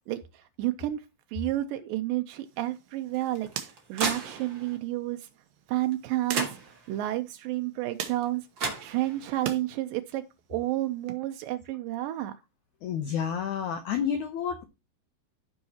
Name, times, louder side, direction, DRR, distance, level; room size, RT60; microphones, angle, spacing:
voice 1, 0.1-1.0 1.3-5.3 5.7-6.6 6.9-8.5 8.8-10.2 10.5-12.3, right 15 dB, 90° right, 1.9 m, -31 dB
sound 1, 2.5-9.7 10.0-11.1, right 10 dB, 70° right, 2.4 m, -43 dB
sound 2, 3.1-4.8 5.9-6.0 6.3-7.1 8.3-8.4 8.6-9.4, right 4 dB, 40° right, 1.7 m, -34 dB
voice 2, 12.8-14.6, left 8 dB, 90° left, 1.7 m, -30 dB
14.5 x 5.5 x 2.8 m
omnidirectional pair, 4.7 m